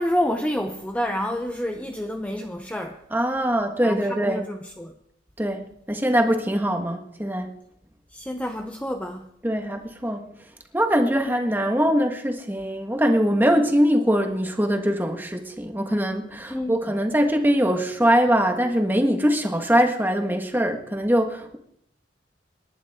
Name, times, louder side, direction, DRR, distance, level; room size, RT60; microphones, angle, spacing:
voice 1, 0.0-3.0 3.8-4.9 8.1-9.3 16.5-16.8, equal, 10° left, 0.7 m, -28 dB
voice 2, 3.1-4.4 5.4-7.5 9.4-10.2 10.7-21.6, equal, 10° right, 1.5 m, -22 dB
28.0 x 11.0 x 3.7 m
head